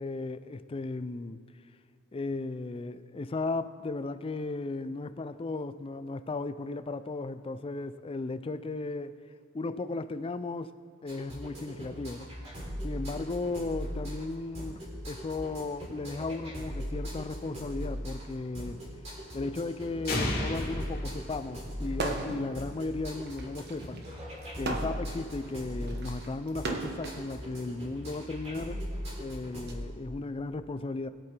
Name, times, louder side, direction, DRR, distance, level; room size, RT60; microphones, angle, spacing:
voice 1, 0.0-1.4 2.1-9.1 9.5-10.7 11.0-12.3 12.8-14.8 15.1-18.8 19.3-24.0 24.6-28.9 29.2-31.1, left 3 dB, 25° left, 0.4 m, -35 dB
sound 1, 11.1-29.8, equal, 35° right, 3.7 m, -39 dB
sound 2, 20.1-22.0, left 1 dB, 50° left, 2.7 m, -33 dB
sound 3, 21.9-22.5 22.8-27.2 28.1-29.7, right 2 dB, 55° right, 1.2 m, -37 dB
20.5 x 8.6 x 3.4 m
head